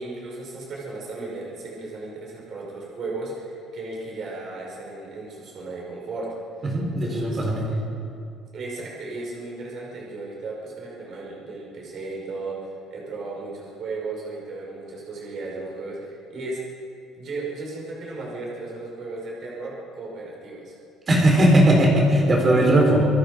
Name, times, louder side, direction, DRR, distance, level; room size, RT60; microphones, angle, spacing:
voice 1, 0.0-6.3 7.0-7.4 8.5-16.6 17.2-20.8, right 3 dB, 40° right, -3 dB, 5.3 m, -35 dB
voice 2, 6.7-7.7 21.1-23.1, right 1 dB, 20° right, 0 dB, 4.1 m, -18 dB
26.5 x 22.5 x 5.2 m, 2.6 s
cardioid pair, 180°, 0 cm